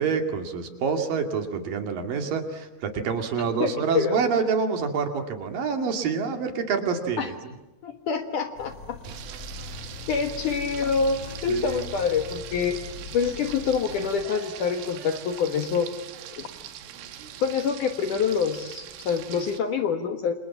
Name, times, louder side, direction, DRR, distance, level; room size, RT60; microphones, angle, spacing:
voice 1, 0.0-7.3 11.5-11.9, right 5 dB, 55° right, 6 dB, 3.5 m, -27 dB
voice 2, 3.6-4.2 7.2-7.3 7.8-9.0 10.1-12.8 13.1-15.9 16.3-16.5 17.4-20.3, left 6 dB, 65° left, 7 dB, 2.2 m, -26 dB
sound 1, 8.5-14.2, left 4 dB, 30° left, 4.0 m, -41 dB
Frying (food), 9.0-19.6, right 10 dB, 90° right, 4.1 m, -42 dB
28.0 x 28.0 x 7.2 m, 1.0 s
omnidirectional pair, 5.4 m